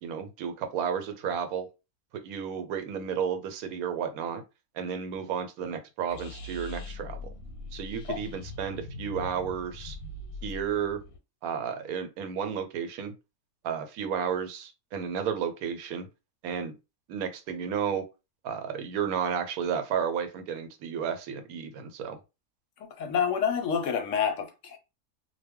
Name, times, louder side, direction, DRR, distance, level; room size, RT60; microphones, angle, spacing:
voice 1, 0.0-1.7 2.1-4.4 4.7-7.2 7.7-10.0 10.4-11.0 11.4-13.1 13.6-16.1 16.4-16.7 17.1-18.0 18.4-22.2, right 7 dB, 85° right, 1.0 m, -32 dB
sound 1, 6.1-11.2, left 2 dB, 90° left, 1.1 m, -41 dB
voice 2, 22.8-24.8, left 7 dB, 70° left, 0.8 m, -28 dB
2.2 x 2.2 x 3.5 m
omnidirectional pair, 1.5 m